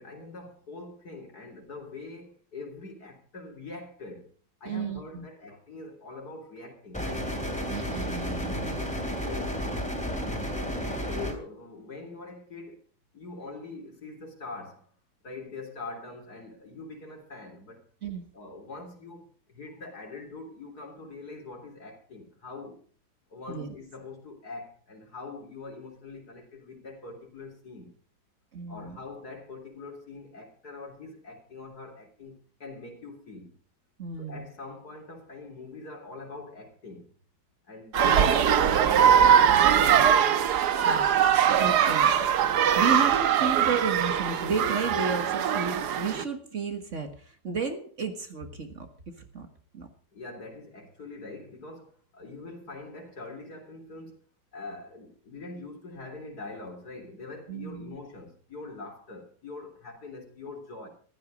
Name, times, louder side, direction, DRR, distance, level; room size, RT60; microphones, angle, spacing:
voice 1, 0.0-4.3 4.6-7.3 9.2-10.4 10.9-12.8 13.1-14.9 15.2-17.8 18.3-22.8 23.3-27.9 28.7-33.6 34.2-37.1 37.6-39.8 43.0-43.3 50.1-54.2 54.5-60.9, left 3 dB, 65° left, 3.9 m, -43 dB
voice 2, 4.7-5.3 7.7-8.8 18.0-18.3 23.5-23.8 28.5-29.0 34.0-34.5 38.0-38.3 40.8-42.1 42.8-49.5 49.7-49.9 57.5-58.0, right 5 dB, 45° right, 1.8 m, -33 dB
sound 1, 6.9-11.3, equal, 5° left, 3.0 m, -32 dB
sound 2, 37.9-46.2, right 9 dB, 75° right, 1.5 m, -21 dB
14.5 x 13.0 x 5.1 m
omnidirectional pair, 1.8 m